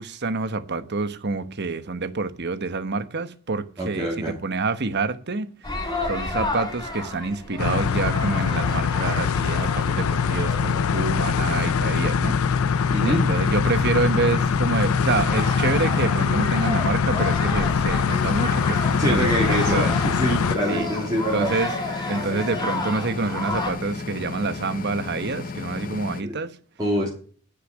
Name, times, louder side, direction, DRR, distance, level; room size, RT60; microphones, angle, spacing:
voice 1, 0.0-20.0 20.7-20.9 21.3-21.7 22.1-26.6, right 3 dB, 50° right, 1.1 m, -27 dB
voice 2, 3.8-4.3 12.9-13.3 19.0-21.5 26.2-26.3 26.8-27.1, equal, 20° right, 2.9 m, -25 dB
sound 1, 5.6-23.7, left 2 dB, 20° left, 3.6 m, -33 dB
sound 2, 7.6-20.6, left 6 dB, 75° left, 0.5 m, -23 dB
sound 3, 18.0-26.2, left 3 dB, 40° left, 0.7 m, -34 dB
9.9 x 6.8 x 7.9 m
head